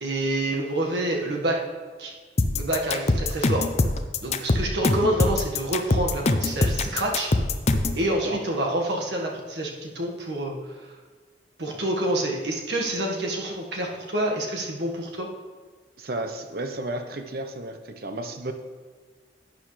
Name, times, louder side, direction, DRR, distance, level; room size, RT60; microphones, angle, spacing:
voice 1, 0.0-1.6 2.0-2.1 2.5-3.7 4.2-7.3 8.0-10.6 11.6-15.3, right 1 dB, 75° right, 0 dB, 1.6 m, -27 dB
sound 1, 2.4-8.0, left 2 dB, 40° left, 0.5 m, -23 dB
voice 2, 16.0-18.5, right 2 dB, 55° right, 7 dB, 0.9 m, -33 dB
11.5 x 9.3 x 3.2 m, 1.5 s
head